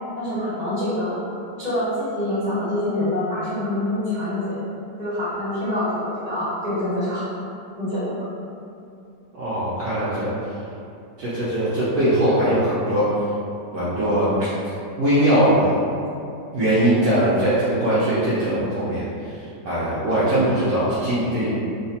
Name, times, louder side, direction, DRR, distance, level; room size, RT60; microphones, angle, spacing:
voice 1, 0.2-1.2 1.6-4.6 5.0-7.4 7.8-8.2 17.1-17.2, left 1 dB, 25° right, -12 dB, 1.3 m, -25 dB
voice 2, 9.3-10.3 11.2-13.1 13.7-14.3 15.0-15.8 16.5-19.0 19.6-21.5, right 1 dB, 65° right, -12 dB, 1.1 m, -20 dB
3.4 x 2.9 x 2.8 m, 2.6 s
omnidirectional pair, 1.9 m